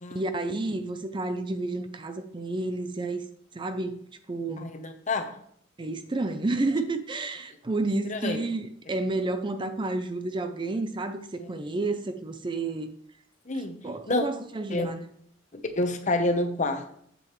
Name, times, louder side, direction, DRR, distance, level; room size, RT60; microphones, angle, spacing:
voice 1, 0.1-3.3 3.5-4.0 4.3-4.7 5.8-12.9 13.8-15.1, right 2 dB, 25° right, 0.5 m, -30 dB
voice 2, 4.6-5.4 8.0-8.5 11.4-11.5 13.5-13.8 14.1-14.2 14.7-14.9 15.5-16.9, left 2 dB, 40° left, 0.9 m, -28 dB
7.8 x 7.5 x 3.1 m
head